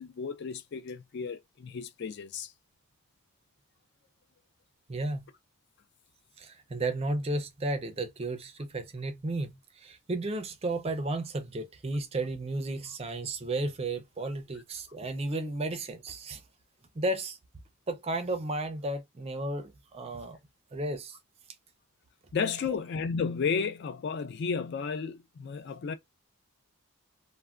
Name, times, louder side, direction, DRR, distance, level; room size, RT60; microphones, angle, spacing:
voice 1, 0.0-2.5 22.3-25.9, left 5 dB, 50° left, 0.3 m, -33 dB
voice 2, 4.9-5.3 6.4-16.4 16.9-17.4 17.9-20.4 20.7-21.2 22.7-22.8, right 2 dB, 25° right, 0.4 m, -33 dB
3.3 x 2.1 x 2.3 m
head